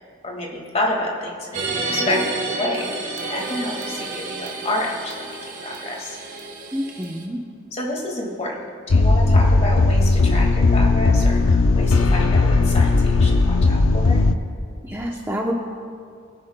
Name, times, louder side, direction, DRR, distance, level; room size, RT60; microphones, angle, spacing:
voice 1, 0.2-6.2 7.7-8.6 8.9-14.2, left 1 dB, 30° left, -1 dB, 1.9 m, -29 dB
sound 1, 1.5-7.2, right 2 dB, 40° right, 1.2 m, -30 dB
voice 2, 6.7-7.4 14.8-15.5, equal, 10° right, -1 dB, 0.7 m, -27 dB
sound 2, 8.9-14.3, left 3 dB, 85° left, 0.6 m, -17 dB
22.0 x 10.5 x 2.2 m, 2.2 s
head